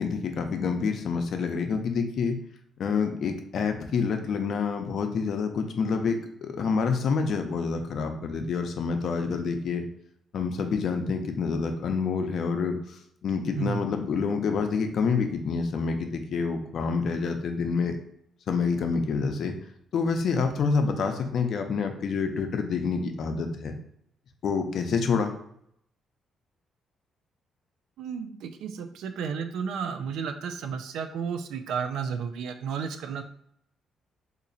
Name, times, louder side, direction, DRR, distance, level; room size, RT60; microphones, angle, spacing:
voice 1, 0.0-2.4 2.8-9.8 10.3-12.8 13.2-18.0 18.5-19.5 19.9-23.8 24.4-25.3, left 5 dB, 65° left, 5 dB, 0.5 m, -27 dB
voice 2, 28.0-33.2, right 6 dB, 80° right, 8 dB, 0.4 m, -32 dB
2.9 x 2.5 x 3.9 m, 0.70 s
cardioid pair, 90°, 0 cm